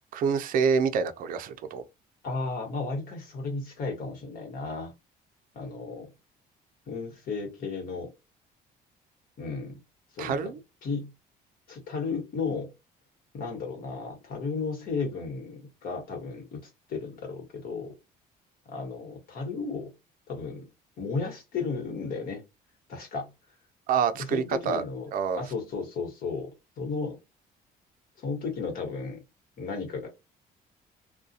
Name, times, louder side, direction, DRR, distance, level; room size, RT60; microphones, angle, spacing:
voice 1, 0.1-1.8 10.2-10.6 23.9-24.8 25.1-25.4, right 6 dB, 55° right, 0.4 m, -27 dB
voice 2, 2.2-4.9 5.5-6.1 6.9-8.1 9.4-9.8 10.1-10.5 10.8-11.1 11.7-12.7 13.3-17.9 18.7-19.9 20.3-20.7 21.0-22.4 22.9-23.3 24.3-25.1 25.4-26.5 26.8-27.2 28.2-29.2 29.6-30.1, left 4 dB, 60° left, 1.3 m, -34 dB
2.3 x 2.2 x 2.7 m
cardioid pair, 110°, 17 cm